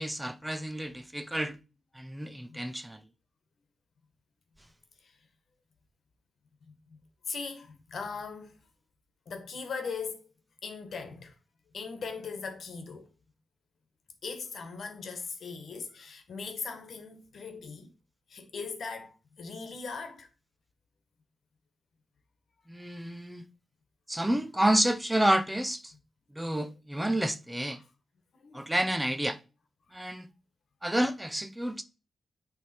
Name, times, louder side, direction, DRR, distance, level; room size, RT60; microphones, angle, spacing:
voice 1, 0.0-1.6 2.0-3.0 22.7-23.4 24.1-25.8 26.3-27.8 28.5-29.4 29.9-30.3 30.8-31.8, right 1 dB, 5° right, 0.5 m, -29 dB
voice 2, 0.6-0.9 2.2-2.6 5.0-5.1 6.6-7.0 7.3-8.5 9.3-10.3 10.6-11.3 11.7-13.1 14.2-17.9 18.3-20.3 22.9-23.1 26.6-26.7 27.7-27.8 28.3-28.7, left 5 dB, 55° left, 1.4 m, -40 dB
9.5 x 3.4 x 4.4 m
wide cardioid pair, 170°, 0 cm